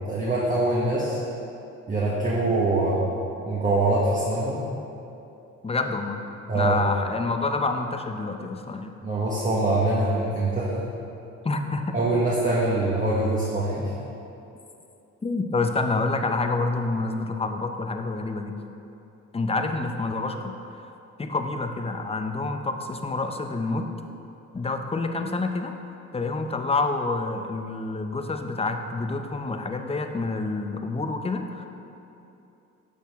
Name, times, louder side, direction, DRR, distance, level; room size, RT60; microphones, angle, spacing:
voice 1, 0.1-1.2 1.9-3.0 3.5-4.6 6.5-6.9 9.0-10.8 11.9-13.9, right 2 dB, 25° right, -6 dB, 1.3 m, -24 dB
voice 2, 5.6-6.2 6.5-8.9 11.4-12.0 15.2-18.6 19.3-20.9 21.2-23.9 24.5-25.7 26.1-31.7, left 3 dB, 20° left, 5 dB, 0.6 m, -28 dB
10.0 x 6.4 x 3.5 m, 2.8 s
cardioid pair, 90°, 30 cm